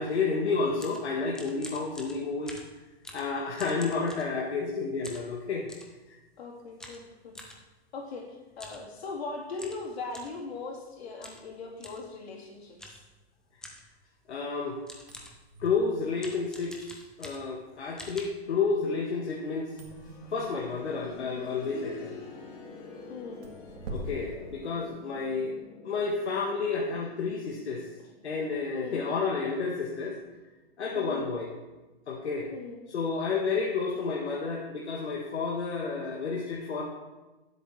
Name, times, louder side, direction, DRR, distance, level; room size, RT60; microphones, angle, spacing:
voice 1, 0.0-2.5 3.1-5.7 14.3-14.8 15.6-19.7 20.3-22.2 23.9-25.5 25.8-27.9 28.2-30.2 30.8-31.5 32.1-32.5 32.9-36.9, left 4 dB, 90° left, -3 dB, 1.8 m, -30 dB
sound 1, 0.5-4.7 5.0-5.9 6.8-7.6 8.5-8.8 9.1-9.2 9.6-10.4 11.2-11.5 11.8-12.1 12.8-13.1 13.6-13.9 14.5-14.6 14.9-15.4 16.2-17.6 18.0-18.2, left 1 dB, ahead, 0.7 m, -46 dB
voice 2, 6.4-7.3 7.9-8.2 8.6-13.0 23.1-23.4 28.7-29.0 30.9-31.2 32.5-32.8, left 3 dB, 70° left, -4 dB, 3.9 m, -39 dB
sound 2, 14.9-25.4, right 1 dB, 60° right, 2.2 m, -47 dB
sound 3, 19.7-30.5 30.8-30.9 31.8-31.9, left 3 dB, 45° left, 3.7 m, -47 dB
17.0 x 7.9 x 3.3 m, 1.1 s
hypercardioid pair, 150°, 32 cm